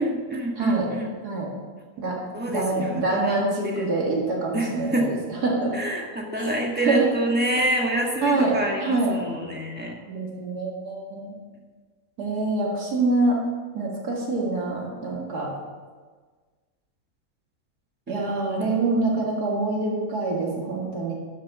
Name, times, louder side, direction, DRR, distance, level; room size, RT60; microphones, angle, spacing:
voice 1, 0.0-1.1 2.3-3.4 3.6-3.9 4.5-5.1 5.7-9.9 18.6-18.7, right 1 dB, 5° right, 0 dB, 1.2 m, -27 dB
voice 2, 0.6-0.9 1.2-1.5 2.0-2.2 2.5-5.7 6.4-6.5 6.8-7.1 8.2-9.2 10.0-11.3 12.2-13.4 13.7-15.5 18.1-21.1, right 3 dB, 75° right, -3 dB, 2.5 m, -25 dB
12.0 x 6.4 x 5.9 m, 1.5 s
omnidirectional pair, 1.7 m